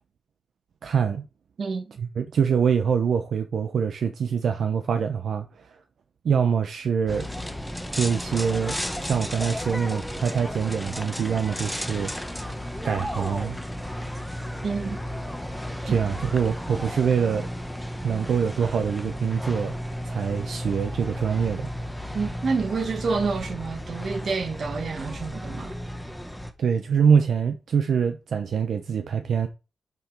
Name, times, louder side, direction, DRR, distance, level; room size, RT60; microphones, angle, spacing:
voice 1, 0.8-1.2 2.0-5.8 6.2-7.3 7.9-12.5 12.8-13.6 15.8-17.5 18.0-19.7 20.0-21.7 26.6-29.5, right 6 dB, 70° right, 0.9 m, -24 dB
voice 2, 1.6-1.9 14.6-15.0 15.9-16.0 22.1-25.7, right 4 dB, 50° right, 1.6 m, -28 dB
sound 1, 7.1-26.5, equal, ahead, 1.0 m, -33 dB
7.4 x 6.0 x 4.8 m
wide cardioid pair, 155°, 0 cm